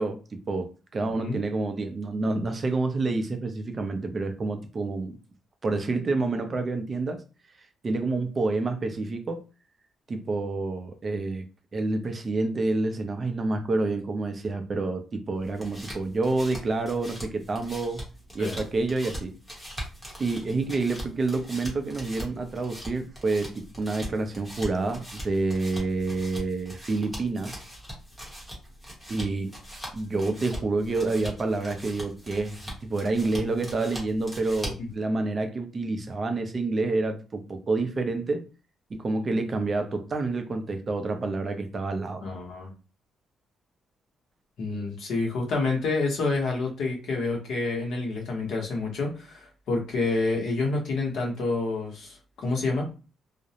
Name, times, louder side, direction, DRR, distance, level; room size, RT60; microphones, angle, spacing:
voice 1, 0.0-5.2 5.6-7.2 7.8-9.4 10.1-11.5 11.7-18.0 18.3-19.3 20.2-27.6 29.1-29.6 29.9-38.4 38.9-42.3, right 3 dB, 30° right, 0.4 m, -28 dB
sound 1, 15.3-34.9, equal, 5° left, 0.8 m, -41 dB
voice 2, 42.2-42.7 44.6-52.9, left 3 dB, 65° left, 0.9 m, -28 dB
2.4 x 2.0 x 2.7 m
cardioid pair, 160°, 0 cm